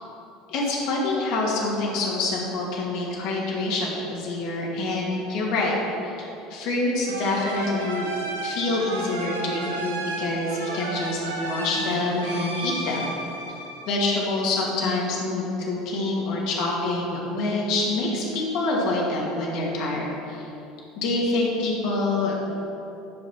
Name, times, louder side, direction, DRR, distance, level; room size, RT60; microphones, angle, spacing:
voice 1, 0.5-5.7 6.0-8.1 8.4-13.0 13.9-20.5 21.0-22.5, left 2 dB, 60° left, -3 dB, 2.4 m, -26 dB
sound 1, 7.1-14.5, right 2 dB, 80° right, 1.6 m, -33 dB
11.0 x 5.2 x 5.8 m, 2.9 s
figure-of-eight pair, 70°, 0 cm